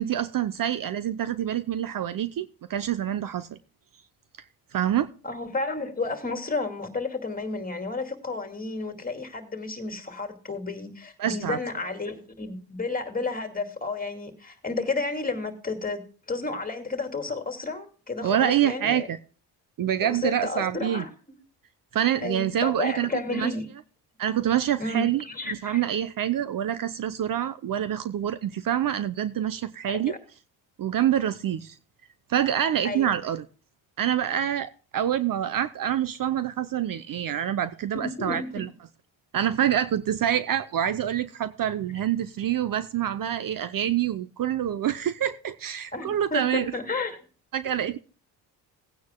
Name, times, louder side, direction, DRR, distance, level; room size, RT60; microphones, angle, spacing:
voice 1, 0.0-3.5 4.7-5.1 11.2-11.6 18.2-19.2 19.8-21.0 21.9-23.5 24.2-30.1 30.8-31.7 32.3-33.4 34.0-38.7 39.3-46.7 47.5-48.0, right 10 dB, 50° right, 0.8 m, -26 dB
voice 2, 5.2-16.0 16.3-19.1 20.0-21.1 22.2-23.7 24.8-25.8 30.1-30.2 32.8-33.2 37.9-38.7 45.9-47.2, left 3 dB, 20° left, 2.4 m, -32 dB
18.5 x 9.4 x 2.2 m
supercardioid pair, 70°, 43 cm